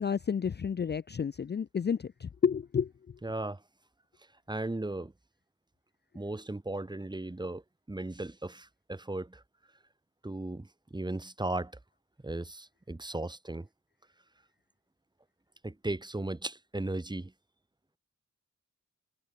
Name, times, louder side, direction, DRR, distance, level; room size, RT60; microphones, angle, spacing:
voice 1, 0.0-2.9, left 7 dB, 35° left, 0.5 m, -30 dB
voice 2, 3.2-3.6 4.5-5.1 6.1-7.6 7.9-9.4 10.2-11.7 12.2-13.7 15.6-17.3, right 2 dB, 15° right, 1.7 m, -36 dB
wide cardioid pair, 120°, 32 cm